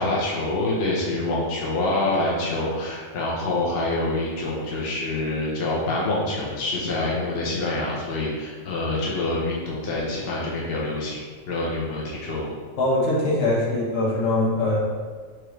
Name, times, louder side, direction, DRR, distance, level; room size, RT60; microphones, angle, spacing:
voice 1, 0.0-11.2 11.5-12.4, left 2 dB, 55° left, -5 dB, 0.9 m, -26 dB
voice 2, 12.8-14.8, left 2 dB, 75° left, -6 dB, 1.3 m, -22 dB
4.5 x 2.4 x 3.1 m, 1.5 s
omnidirectional pair, 1.4 m